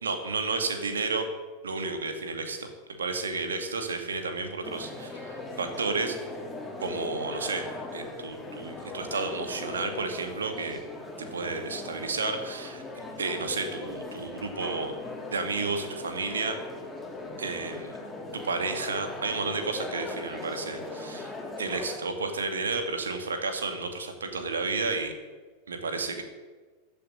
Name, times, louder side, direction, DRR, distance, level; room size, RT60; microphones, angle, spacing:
voice 1, 0.0-1.3 1.6-2.7 3.0-6.2 6.8-7.6 7.9-10.8 11.2-14.9 15.3-16.6 17.4-17.9 18.3-21.3 21.6-25.1 25.7-26.2, right 4 dB, 70° right, 6 dB, 2.3 m, -32 dB
sound 1, 4.6-22.0, left 2 dB, 5° left, 3.1 m, -39 dB
15.0 x 8.4 x 9.8 m, 1.4 s
figure-of-eight pair, 90°, 0 cm